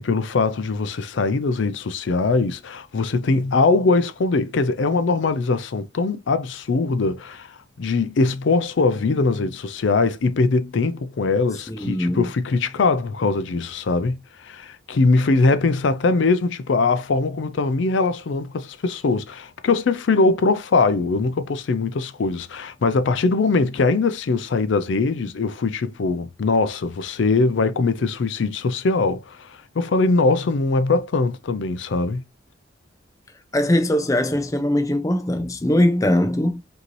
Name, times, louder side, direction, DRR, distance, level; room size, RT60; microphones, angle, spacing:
voice 1, 0.0-32.2, left 3 dB, 70° left, 0.4 m, -21 dB
voice 2, 11.7-12.3 33.5-36.6, left 1 dB, 15° left, 0.4 m, -21 dB
5.1 x 2.7 x 3.1 m
head